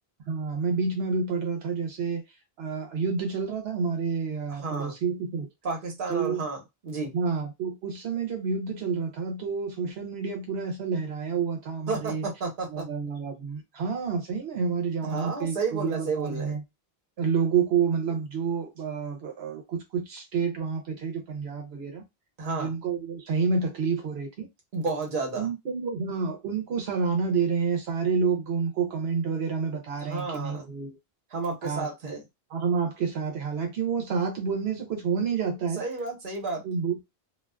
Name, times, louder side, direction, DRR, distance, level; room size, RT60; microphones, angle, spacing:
voice 1, 0.3-2.2 2.6-5.5 6.1-6.4 7.1-12.2 12.7-16.6 17.2-22.0 22.6-24.5 25.3-31.0 31.6-32.2 32.5-35.8 36.6-37.1, right 5 dB, 85° right, 0.9 m, -29 dB
voice 2, 4.5-5.0 5.6-7.1 11.9-12.9 15.0-16.6 22.4-22.7 24.7-25.5 30.0-30.6 31.3-32.2 35.8-36.6, right 4 dB, 55° right, 1.1 m, -31 dB
2.4 x 2.3 x 2.2 m
omnidirectional pair, 1.0 m